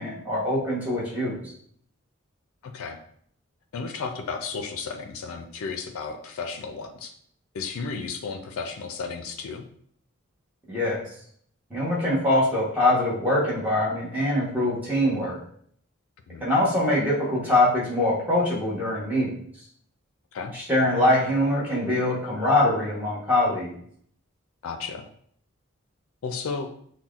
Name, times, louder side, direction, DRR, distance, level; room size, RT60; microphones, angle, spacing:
voice 1, 0.0-1.4 10.7-11.0 11.7-15.4 16.4-19.3 20.7-23.7, left 1 dB, 5° right, -6 dB, 0.9 m, -23 dB
voice 2, 2.6-3.0 3.7-7.1 7.5-9.7 16.3-16.4 20.3-20.6 24.6-25.1 26.2-26.7, left 5 dB, 85° left, 6 dB, 0.4 m, -33 dB
5.5 x 2.2 x 2.3 m, 0.63 s
head